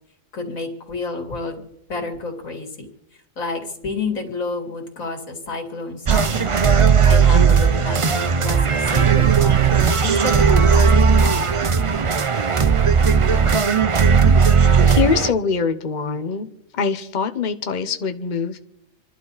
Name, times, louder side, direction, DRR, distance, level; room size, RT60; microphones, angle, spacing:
voice 1, 0.3-1.6 1.9-2.9 3.4-6.5 7.0-10.9 11.2-11.5, left 3 dB, 85° left, 3 dB, 2.9 m, -30 dB
sound 1, 6.1-15.3, right 6 dB, 45° right, 0.4 m, -16 dB
voice 2, 14.9-16.5 16.7-18.6, left 5 dB, 40° left, 7 dB, 1.0 m, -23 dB
27.5 x 12.0 x 4.1 m, 0.79 s
omnidirectional pair, 1.4 m